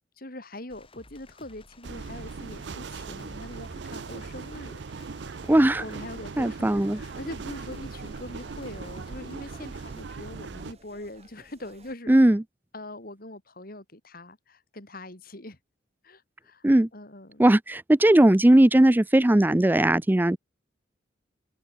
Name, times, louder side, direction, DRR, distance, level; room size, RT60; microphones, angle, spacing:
voice 1, 0.0-5.3 5.8-12.2 12.7-15.6 16.0-16.7 16.9-17.4, left 1 dB, 50° left, 3.9 m, -42 dB
sound 1, 0.7-10.1, left 1 dB, 30° left, 5.8 m, -53 dB
sound 2, 1.8-10.7, right 4 dB, 65° right, 0.6 m, -39 dB
voice 2, 5.5-5.8 6.4-7.0 12.1-12.4 16.6-16.9 17.4-20.4, right 1 dB, 10° right, 0.4 m, -18 dB
sound 3, 6.9-12.0, right 2 dB, 35° right, 4.0 m, -57 dB
head